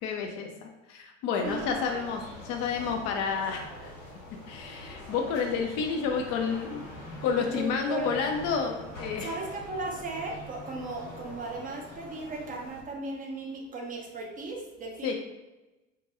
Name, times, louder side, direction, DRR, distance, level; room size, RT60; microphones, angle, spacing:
voice 1, 0.0-3.9 4.5-6.8 7.2-9.4 15.0-15.1, left 6 dB, 45° left, 2 dB, 0.4 m, -30 dB
sound 1, 1.4-12.8, equal, 90° left, 0.8 m, -44 dB
voice 2, 7.5-8.1 9.2-15.1, right 3 dB, 25° right, 0 dB, 0.4 m, -36 dB
2.3 x 2.2 x 2.8 m, 1.0 s
figure-of-eight pair, 65°, 38 cm